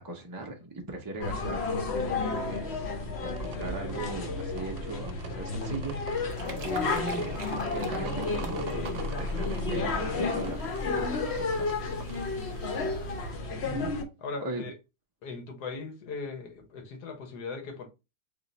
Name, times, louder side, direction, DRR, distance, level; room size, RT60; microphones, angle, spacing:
voice 1, 0.0-2.1 2.4-7.4 7.7-8.9 9.2-12.0 14.4-14.6, right 2 dB, 30° right, 0.3 m, -39 dB
sound 1, 1.2-14.0, left 3 dB, 50° left, 0.9 m, -31 dB
sound 2, 1.5-12.7, right 6 dB, 70° right, 1.0 m, -47 dB
sound 3, 6.0-13.6, right 4 dB, 50° right, 1.0 m, -47 dB
voice 2, 12.7-13.6 14.2-14.7 15.2-17.9, left 4 dB, 85° left, 1.6 m, -39 dB
3.7 x 2.4 x 3.9 m
omnidirectional pair, 1.7 m